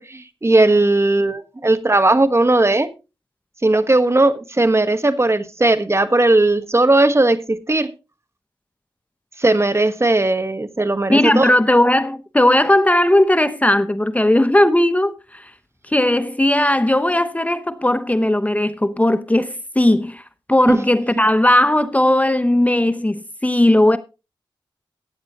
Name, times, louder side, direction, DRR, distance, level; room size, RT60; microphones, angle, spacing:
voice 1, 0.0-2.9 3.6-7.9 9.4-11.5 20.7-20.8, right 2 dB, 30° right, 1.3 m, -17 dB
voice 2, 11.1-15.5 15.9-20.2 20.5-24.0, left 1 dB, 15° left, 0.9 m, -17 dB
15.0 x 9.5 x 3.0 m
cardioid pair, 55°, 9 cm